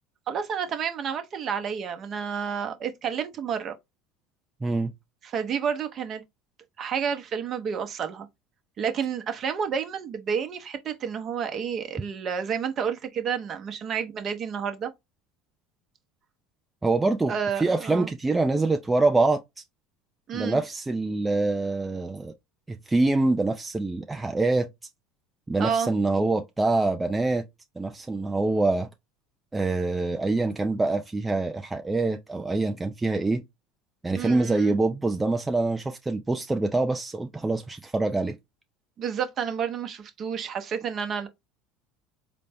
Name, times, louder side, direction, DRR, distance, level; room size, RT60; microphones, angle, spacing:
voice 1, 0.3-3.7 5.2-6.2 6.8-8.3 8.8-14.9 17.3-18.1 20.3-20.6 25.6-25.9 34.2-34.8 39.0-41.3, right 7 dB, 40° right, 0.8 m, -30 dB
voice 2, 4.6-4.9 16.8-19.4 20.3-22.3 22.7-24.7 25.5-27.4 27.8-28.9 29.5-33.4 34.0-38.4, right 3 dB, 15° right, 0.4 m, -25 dB
3.9 x 2.1 x 3.4 m
supercardioid pair, 100°, 0 cm